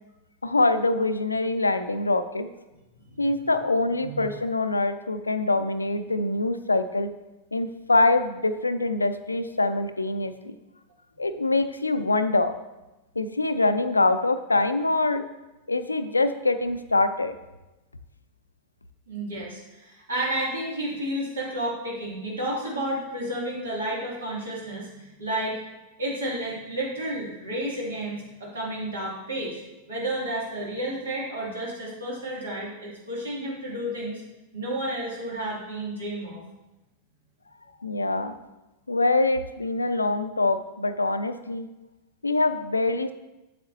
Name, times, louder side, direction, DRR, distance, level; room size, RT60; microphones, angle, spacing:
voice 1, 0.4-2.5 3.2-7.1 7.5-10.6 11.2-12.6 13.2-15.2 15.7-17.3 37.8-38.4 38.9-41.7 42.2-43.1, left 2 dB, 80° left, 11 dB, 0.4 m, -24 dB
voice 2, 19.1-25.6 26.0-29.6 29.9-34.2 34.5-36.4, right 1 dB, 70° right, -4 dB, 2.4 m, -31 dB
7.6 x 7.5 x 2.7 m, 1.0 s
figure-of-eight pair, 90°, 0 cm